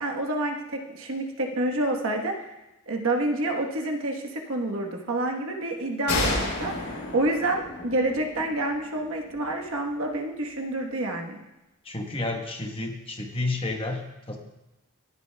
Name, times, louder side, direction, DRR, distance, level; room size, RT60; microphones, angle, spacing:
voice 1, 0.0-2.5 2.9-11.4, right 1 dB, 65° right, 2 dB, 1.2 m, -28 dB
sound 1, 6.1-9.6, left 2 dB, 75° left, 3.1 m, -31 dB
voice 2, 11.8-14.4, left 2 dB, 25° left, 2 dB, 1.1 m, -31 dB
17.5 x 9.1 x 2.2 m, 1.0 s
head